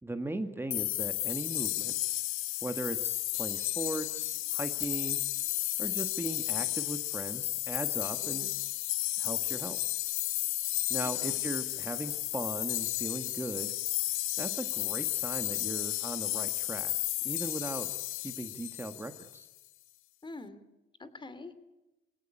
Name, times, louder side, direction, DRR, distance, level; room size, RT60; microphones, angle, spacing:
voice 1, 0.0-1.9 2.6-5.2 5.8-8.5 9.2-9.8 10.9-13.7 14.4-16.9 17.2-17.9 18.2-19.5, right 2 dB, 10° right, 7 dB, 1.8 m, -38 dB
sound 1, 0.7-19.4, left 16 dB, 90° left, 0.7 m, -33 dB
voice 2, 8.2-8.6 11.0-11.4 20.2-20.6 21.0-21.5, left 2 dB, 25° left, 12 dB, 2.9 m, -46 dB
25.0 x 17.5 x 8.7 m, 0.98 s
cardioid pair, 90°, 20 cm